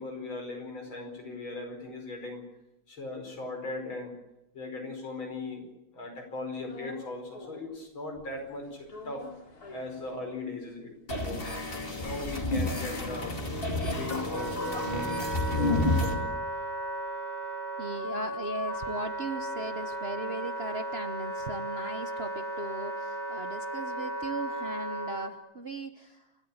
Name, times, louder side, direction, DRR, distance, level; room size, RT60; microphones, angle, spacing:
voice 1, 0.0-2.4 2.9-4.1 4.5-5.7 5.9-9.3 9.7-11.5 12.0-13.4 13.9-16.3, left 2 dB, 80° left, 3 dB, 5.9 m, -39 dB
sound 1, 6.6-7.8 8.1-10.7 11.1-11.2 11.4-15.9 16.2-20.3, left 2 dB, 50° left, 3.7 m, -51 dB
sound 2, 11.1-16.1, left 2 dB, 25° left, 2.7 m, -30 dB
Wind instrument woodwind instrument, 13.7-25.3, right 1 dB, 10° right, 3.6 m, -35 dB
voice 2, 17.8-26.3, right 2 dB, 45° right, 8 dB, 0.9 m, -38 dB
29.5 x 13.0 x 8.6 m, 0.90 s
omnidirectional pair, 2.2 m